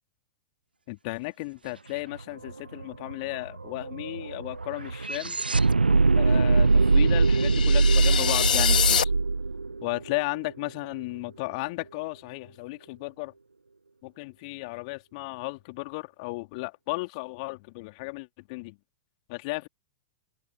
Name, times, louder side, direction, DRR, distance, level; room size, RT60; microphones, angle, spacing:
voice 1, 0.9-5.4 6.2-9.1 9.8-13.3 14.0-18.8 19.3-19.7, left 26 dB, 45° left, 3.0 m, -35 dB
sound 1, 2.1-2.2 2.5-10.7, right 3 dB, 85° right, 0.6 m, -23 dB
sound 2, 7.0-9.0, left 9 dB, 65° left, 2.7 m, -26 dB
open air
figure-of-eight pair, 100°, 5 cm